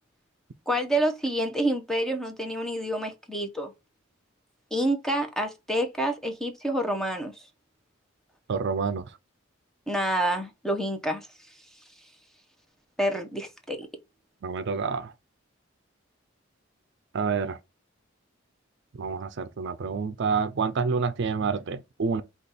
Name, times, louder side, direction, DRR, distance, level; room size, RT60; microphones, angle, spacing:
voice 1, 0.7-3.7 4.7-7.3 9.9-11.3 13.0-13.9, right 1 dB, ahead, 0.7 m, -28 dB
voice 2, 8.5-9.0 14.4-15.1 17.1-17.6 19.0-22.2, right 5 dB, 60° right, 0.5 m, -28 dB
5.1 x 2.4 x 4.0 m
head